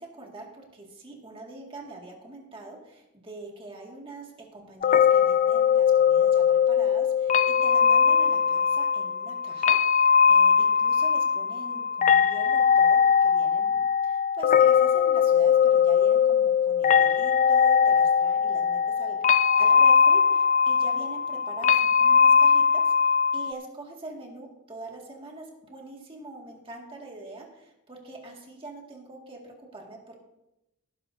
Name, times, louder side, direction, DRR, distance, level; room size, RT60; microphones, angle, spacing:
voice 1, 0.0-30.2, right 2 dB, 25° right, -1 dB, 2.0 m, -43 dB
sound 1, 4.8-23.5, left 7 dB, 35° left, 0.4 m, -21 dB
18.5 x 11.0 x 2.7 m, 0.90 s
head